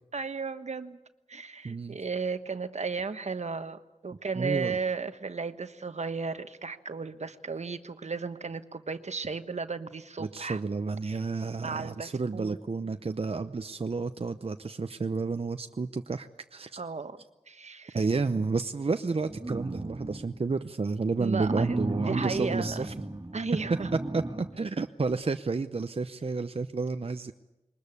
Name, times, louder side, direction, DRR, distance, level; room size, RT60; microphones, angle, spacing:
voice 1, 0.1-1.0 1.3-10.6 11.1-11.2 11.6-12.6 16.8-17.2 17.5-18.0 21.2-22.9 23.3-23.9, right 4 dB, 70° right, 10 dB, 1.2 m, -34 dB
voice 2, 1.6-2.0 4.4-4.8 10.2-16.8 17.9-22.9 24.1-27.3, right 4 dB, 55° right, 9 dB, 0.8 m, -31 dB
sound 1, 19.2-20.4 21.3-24.5 25.1-25.2, right 2 dB, 30° right, 2.6 m, -35 dB
22.5 x 20.0 x 8.4 m, 1.0 s
wide cardioid pair, 50°, 12 cm